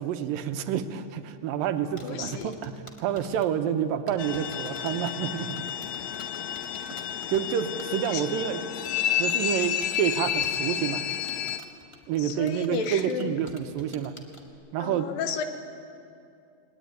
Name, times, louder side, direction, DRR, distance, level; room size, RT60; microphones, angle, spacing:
voice 1, 0.0-5.6 6.9-7.0 7.3-8.6 9.2-11.0 12.1-14.1 14.7-15.1, right 9 dB, 85° right, 9 dB, 2.7 m, -28 dB
voice 2, 2.0-2.5 8.1-8.2 12.2-13.4 14.8-15.4, left 6 dB, 90° left, 7 dB, 3.1 m, -32 dB
sound 1, 2.0-3.5 4.0-7.5 7.8-8.2 8.8-14.5, left 1 dB, 15° left, 1.1 m, -49 dB
sound 2, 4.2-11.6, left 10 dB, 70° left, 1.9 m, -31 dB
21.0 x 20.5 x 9.1 m, 2.5 s
omnidirectional pair, 3.9 m